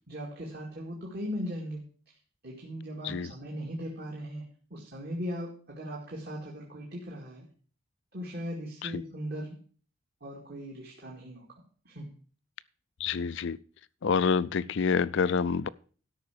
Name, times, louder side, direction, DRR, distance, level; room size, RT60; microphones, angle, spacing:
voice 1, 0.0-1.8 2.4-7.5 8.1-9.6 10.2-11.5 11.9-12.1, equal, 50° right, 2.2 m, -38 dB
voice 2, 13.0-13.6 14.0-15.7, left 5 dB, 55° left, 0.4 m, -27 dB
12.5 x 5.8 x 6.6 m
head